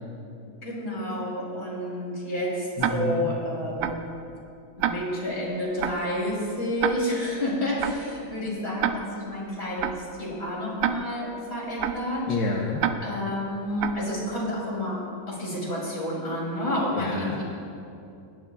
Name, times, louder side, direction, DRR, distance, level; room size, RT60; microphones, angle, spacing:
voice 1, 0.4-4.0 4.8-12.3 13.0-15.0 15.3-17.3, equal, 30° left, -6 dB, 3.3 m, -30 dB
voice 2, 2.8-3.3 12.3-12.8 16.9-17.4, left 3 dB, 75° left, -1 dB, 1.6 m, -29 dB
Tick-tock, 2.8-2.9 3.8-3.9 4.8-4.9 5.8-5.9 6.8-6.9 7.8-7.9 8.8-8.9 9.8-9.9 10.8-10.9 11.8-11.9 12.8-12.9 13.8-13.9, right 11 dB, 75° right, 1.0 m, -25 dB
18.5 x 10.5 x 2.4 m, 2.6 s
omnidirectional pair, 2.3 m